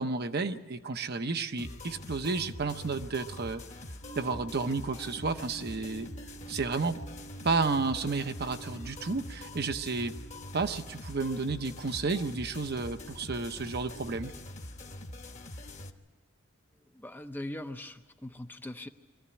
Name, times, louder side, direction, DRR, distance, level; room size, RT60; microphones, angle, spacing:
voice 1, 0.0-3.6 4.2-6.1 6.5-7.0 7.4-10.1 10.5-14.3, right 4 dB, 50° right, 8 dB, 0.8 m, -31 dB
sound 1, 1.6-15.9, left 1 dB, 35° left, 1.1 m, -44 dB
sound 2, 4.0-10.7, right 5 dB, 75° right, 2.7 m, -50 dB
voice 2, 16.9-18.9, left 1 dB, 10° left, 7 dB, 0.6 m, -41 dB
22.0 x 14.5 x 9.8 m, 1.3 s
head